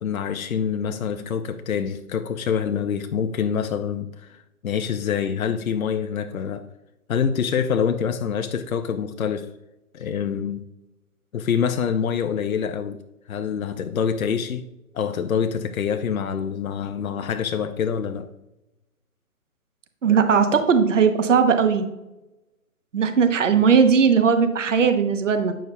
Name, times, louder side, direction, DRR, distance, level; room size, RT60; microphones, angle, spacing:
voice 1, 0.0-6.7 7.1-9.5 9.9-10.6 11.3-13.0 13.3-14.6 14.9-18.3, left 7 dB, 65° left, 0.6 m, -26 dB
voice 2, 20.0-21.9 22.9-25.5, right 6 dB, 55° right, 0.9 m, -18 dB
8.7 x 6.5 x 2.2 m
figure-of-eight pair, 140°, 44 cm